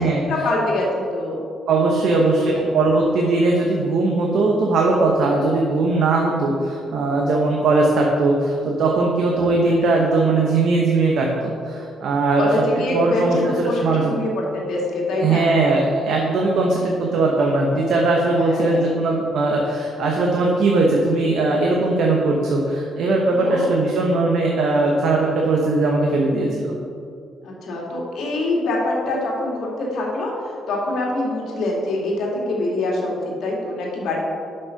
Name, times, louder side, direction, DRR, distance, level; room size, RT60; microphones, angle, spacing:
voice 1, 0.2-1.4 2.1-2.6 12.4-15.5 18.4-18.8 23.3-23.7 27.4-30.3 30.7-34.2, left 2 dB, 75° left, -2 dB, 2.1 m, -24 dB
voice 2, 1.7-12.5 12.9-14.1 15.2-26.8, right 3 dB, 70° right, -1 dB, 1.0 m, -19 dB
7.3 x 5.5 x 5.8 m, 2.4 s
cardioid pair, 90°, 0 cm